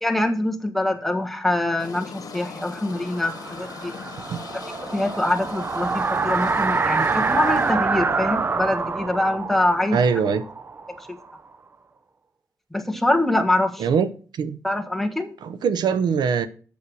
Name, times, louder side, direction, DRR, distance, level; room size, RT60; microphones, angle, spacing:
voice 1, 0.0-3.9 4.8-10.0 12.7-13.8 14.6-15.3, left 1 dB, 5° left, 1.3 m, -24 dB
sound 1, 1.8-7.7, left 5 dB, 60° left, 1.8 m, -40 dB
sound 2, 2.5-11.4, right 4 dB, 30° right, 0.5 m, -26 dB
voice 2, 9.9-10.4 13.8-14.1 14.3-14.6 15.4-16.5, right 6 dB, 80° right, 0.7 m, -22 dB
8.4 x 6.6 x 6.1 m
cardioid pair, 110°, 7 cm